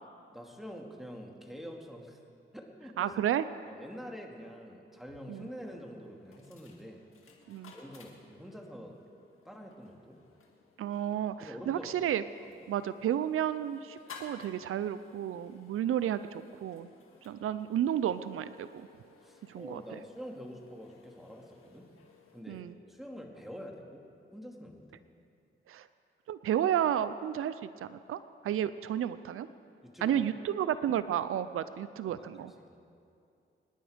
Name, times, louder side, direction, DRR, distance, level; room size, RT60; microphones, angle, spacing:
voice 1, 0.3-2.2 2.5-3.1 3.7-7.0 7.7-9.0 9.4-10.2 11.4-11.9 19.2-21.9 22.3-24.0 24.3-25.0 29.8-30.2 30.9-31.0 32.2-32.3 32.6-32.8, equal, ahead, 1 dB, 2.5 m, -46 dB
voice 2, 3.0-3.4 5.3-5.5 7.5-7.7 10.8-12.2 12.7-16.9 17.2-18.9 19.5-20.0 22.5-22.7 25.7-25.9 26.3-29.5 30.0-32.5, right 10 dB, 90° right, 13 dB, 0.5 m, -32 dB
sound 1, 5.3-22.4, left 4 dB, 85° left, 1.9 m, -57 dB
25.0 x 10.5 x 5.1 m, 2.5 s
cardioid pair, 60°, 21 cm